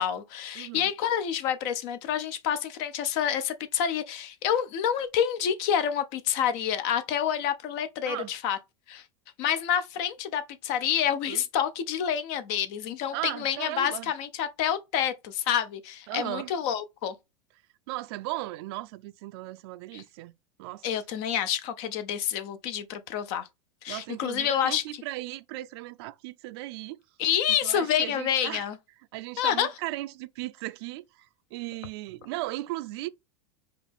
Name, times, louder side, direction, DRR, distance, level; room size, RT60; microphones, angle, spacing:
voice 1, 0.0-8.6 8.9-9.0 9.4-17.1 19.9-20.0 20.8-23.5 23.8-24.8 27.2-28.8 29.4-29.7, left 9 dB, 55° left, 0.8 m, -28 dB
voice 2, 0.6-0.9 8.1-8.3 11.3-11.4 13.1-14.1 16.1-16.5 17.9-20.3 20.6-20.9 23.9-27.0 27.6-28.6 29.1-33.1, right 18 dB, 60° right, 0.4 m, -37 dB
4.8 x 2.5 x 3.4 m
hypercardioid pair, 100°, 15 cm